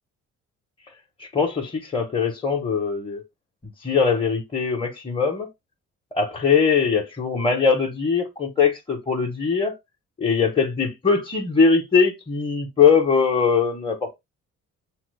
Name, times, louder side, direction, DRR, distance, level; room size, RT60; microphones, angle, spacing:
voice 1, 1.2-3.2 3.8-5.5 6.1-9.8 10.2-14.2, left 5 dB, 15° left, 0.9 m, -21 dB
5.6 x 2.0 x 3.1 m
cardioid pair, 90°, 30 cm